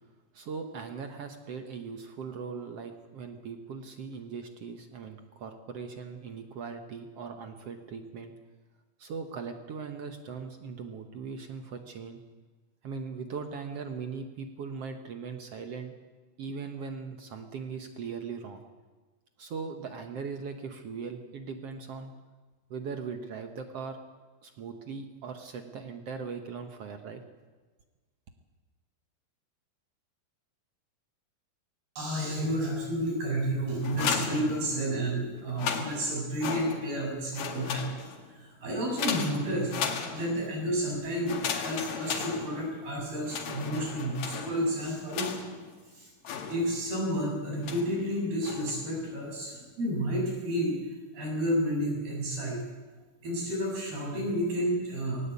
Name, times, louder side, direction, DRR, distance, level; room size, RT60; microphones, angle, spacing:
voice 1, 0.3-8.3 9.0-12.2 12.8-15.9 16.4-18.6 19.4-22.1 22.7-24.0 24.4-27.2, right 5 dB, 65° right, 6 dB, 1.6 m, -39 dB
voice 2, 32.0-37.8 38.4-39.7 40.1-45.3 46.0-46.1 46.5-50.8 51.1-52.6 53.2-55.2, equal, 90° right, -1 dB, 9.2 m, -31 dB
sound 1, 33.8-35.0 35.4-37.0 37.3-38.3 39.0-40.5 41.2-42.9 43.3-45.7 46.2-47.0 47.6-48.0 48.4-48.9, left 6 dB, 65° left, 3.4 m, -35 dB
20.5 x 18.5 x 8.4 m, 1.3 s
omnidirectional pair, 4.3 m